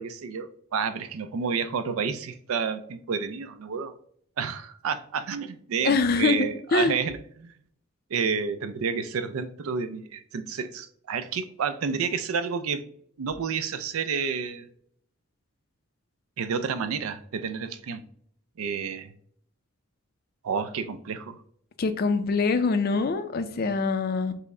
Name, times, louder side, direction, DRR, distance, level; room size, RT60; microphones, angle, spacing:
voice 1, 0.0-3.9 4.4-7.5 8.1-12.8 13.2-14.7 16.4-18.0 18.6-19.1 20.4-21.4, right 6 dB, 80° right, 0.4 m, -30 dB
voice 2, 5.8-7.0 21.8-24.3, left 4 dB, 45° left, 0.4 m, -24 dB
5.5 x 2.1 x 3.6 m
head